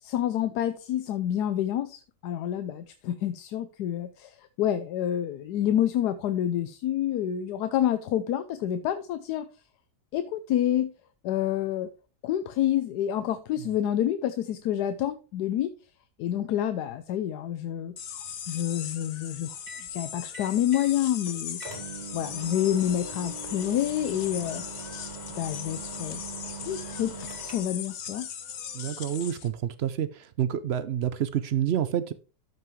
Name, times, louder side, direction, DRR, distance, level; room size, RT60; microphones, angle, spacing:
voice 1, 0.0-9.5 10.1-10.9 11.2-11.9 12.2-15.7 16.2-18.2 18.5-19.5 19.9-21.6 22.1-24.6 25.4-26.2 26.6-28.3, left 11 dB, 80° left, 1.2 m, -28 dB
sound 1, 18.0-29.5, left 8 dB, 60° left, 1.2 m, -39 dB
sound 2, 19.7-19.9 20.3-20.9 21.3-21.4 21.6-27.9, right 4 dB, 25° right, 1.9 m, -42 dB
voice 2, 28.7-32.1, right 10 dB, 70° right, 0.6 m, -28 dB
13.5 x 5.6 x 3.1 m
omnidirectional pair, 1.8 m